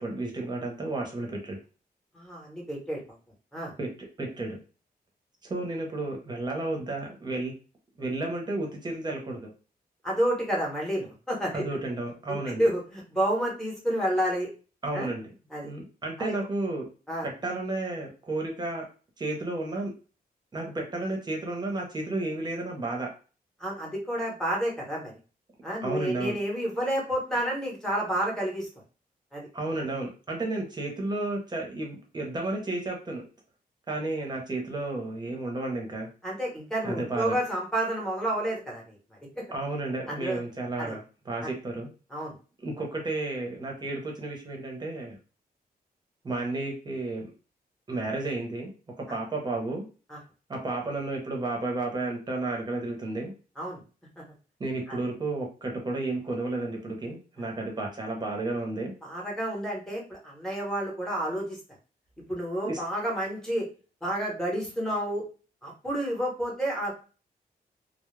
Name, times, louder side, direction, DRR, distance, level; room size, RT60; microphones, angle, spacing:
voice 1, 0.0-1.6 3.8-3.9 4.2-4.6 5.4-7.5 8.0-9.5 11.5-12.7 14.8-15.3 15.6-16.9 17.2-18.8 19.2-19.9 20.5-23.1 25.8-26.4 29.5-33.2 33.9-36.1 36.8-37.4 39.5-41.9 42.6-45.2 46.2-47.3 47.9-48.7 49.0-49.8 50.5-53.3 54.6-58.9 62.6-62.8, right 2 dB, 25° right, 0 dB, 0.8 m, -32 dB
voice 2, 2.1-3.0 3.5-3.7 10.0-11.6 12.3-14.5 14.9-15.1 15.5-15.7 16.2-16.3 17.1-17.3 23.6-25.1 25.6-28.7 29.3-29.5 36.2-39.0 40.1-40.4 40.8-41.0 41.4-41.5 42.1-42.3 50.1-50.2 53.6-53.8 54.2-54.3 54.9-55.0 57.4-57.5 59.0-61.6 62.3-63.7 64.0-65.2 65.6-66.9, right 1 dB, 5° left, -2 dB, 0.9 m, -30 dB
2.3 x 2.0 x 3.1 m, 0.36 s
wide cardioid pair, 155°, 16 cm